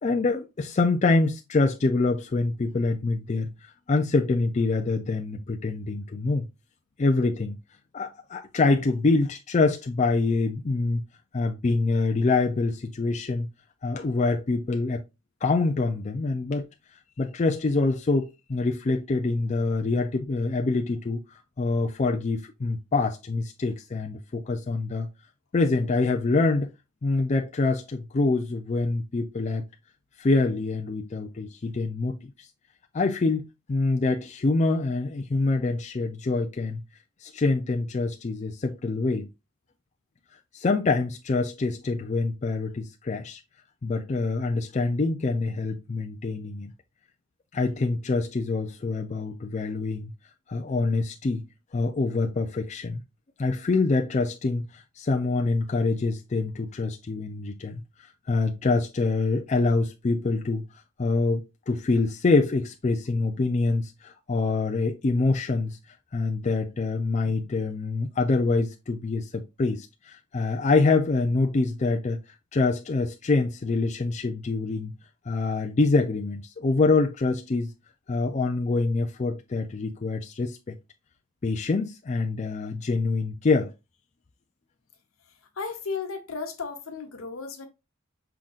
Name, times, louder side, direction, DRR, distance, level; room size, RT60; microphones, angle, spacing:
voice 1, 0.0-6.5 7.0-7.6 7.9-11.0 11.3-13.5 13.8-15.0 15.4-16.7 17.2-21.2 21.6-25.1 25.5-26.7 27.0-29.6 30.2-32.5 32.9-36.8 37.2-39.3 40.5-43.4 43.8-46.7 47.5-50.1 50.5-51.5 51.7-53.0 53.4-57.8 58.3-60.6 61.0-65.8 66.1-72.2 72.5-74.9 75.3-77.7 78.1-80.8 81.4-83.7, left 3 dB, 35° left, 0.4 m, -25 dB
voice 2, 85.6-87.7, left 4 dB, 75° left, 1.0 m, -34 dB
5.6 x 3.7 x 2.4 m
head